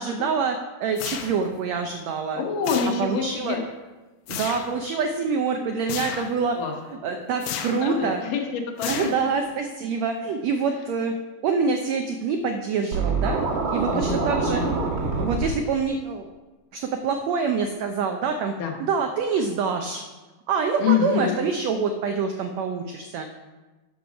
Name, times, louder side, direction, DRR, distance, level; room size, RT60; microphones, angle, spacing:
voice 1, 0.0-2.4 3.0-3.6 4.3-6.6 6.9-8.2 8.9-11.1 11.4-13.4 13.7-14.6 15.2-16.3 16.7-18.5 18.8-20.0 20.5-23.3, right 5 dB, 80° right, 5 dB, 1.5 m, -26 dB
sound 1, 1.0-1.6 2.6-3.3 4.3-4.8 5.9-6.4 7.4-7.9 8.8-9.5, left 9 dB, 90° left, 2.5 m, -33 dB
voice 2, 2.4-3.6 6.5-6.7 7.6-9.1 13.9-14.8 18.6-18.7 20.8-21.4, left 7 dB, 75° left, 2 dB, 2.9 m, -26 dB
Scratching (performance technique), 12.9-15.5, right 4 dB, 50° right, 2.4 m, -25 dB
12.5 x 6.2 x 5.2 m, 1.2 s
omnidirectional pair, 3.9 m